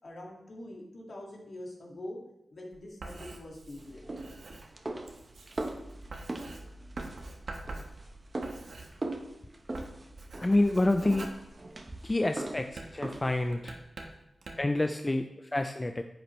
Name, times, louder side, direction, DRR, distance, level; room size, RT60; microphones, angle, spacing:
voice 1, 0.0-2.2 2.5-4.2, left 1 dB, 60° left, -1 dB, 2.2 m, -44 dB
Writing, 2.7-9.4 9.6-12.2 12.7-14.8, right 2 dB, 75° right, 1.3 m, -46 dB
sound 1, 3.8-13.5, right 2 dB, 35° right, 1.0 m, -41 dB
voice 2, 10.4-11.3 12.0-13.7 14.6-16.0, left 2 dB, 25° left, 6 dB, 0.4 m, -28 dB
10.5 x 8.1 x 3.2 m, 0.83 s
wide cardioid pair, 90°, 0 cm